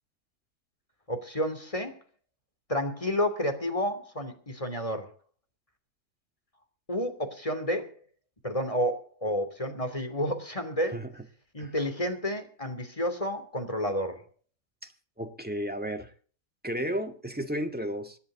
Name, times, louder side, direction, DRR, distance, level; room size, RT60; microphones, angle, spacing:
voice 1, 1.1-2.0 2.7-5.1 6.9-7.9 8.4-11.0 11.5-14.2, equal, 20° left, 3.0 m, -30 dB
voice 2, 15.2-16.1 16.6-18.2, equal, 5° right, 2.0 m, -33 dB
26.0 x 10.5 x 3.9 m
omnidirectional pair, 1.7 m